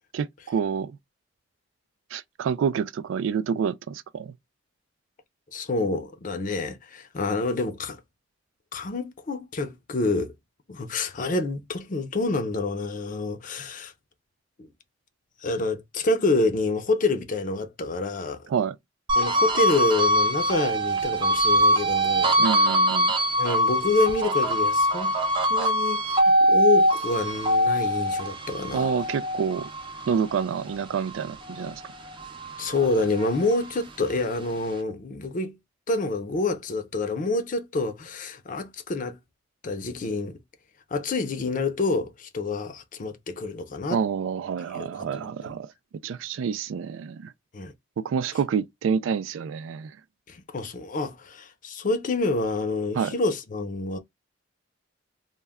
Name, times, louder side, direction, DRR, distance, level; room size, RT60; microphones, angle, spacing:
voice 1, 0.1-1.0 2.1-4.4 18.5-18.8 22.4-23.1 28.7-29.7 30.1-31.8 43.9-45.7 46.0-47.3 48.0-50.0 52.9-53.1, right 6 dB, 85° right, 0.3 m, -28 dB
voice 2, 5.5-8.0 8.7-10.3 10.7-13.9 14.6-14.7 15.4-18.5 19.2-22.4 23.4-25.2 25.5-28.9 32.6-35.6 35.9-39.2 39.6-40.4 40.9-44.0 44.7-45.6 47.5-47.7 50.3-54.0, left 3 dB, 45° left, 0.5 m, -27 dB
sound 1, 19.1-31.7 32.1-33.8, equal, 25° right, 0.5 m, -23 dB
2.2 x 2.1 x 3.4 m
head